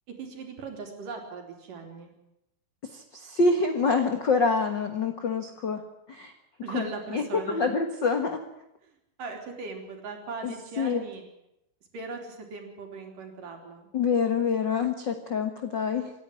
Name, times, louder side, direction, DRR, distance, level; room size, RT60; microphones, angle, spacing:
voice 1, 0.2-2.1 6.6-7.7 8.9-11.2 11.9-13.9, right 4 dB, 60° right, 3 dB, 4.6 m, -39 dB
voice 2, 2.9-5.8 6.1-6.3 6.7-6.9 7.1-8.4 10.4-11.0 13.9-16.1, left 4 dB, 60° left, 6 dB, 1.1 m, -26 dB
27.0 x 10.5 x 9.9 m, 0.84 s
omnidirectional pair, 4.5 m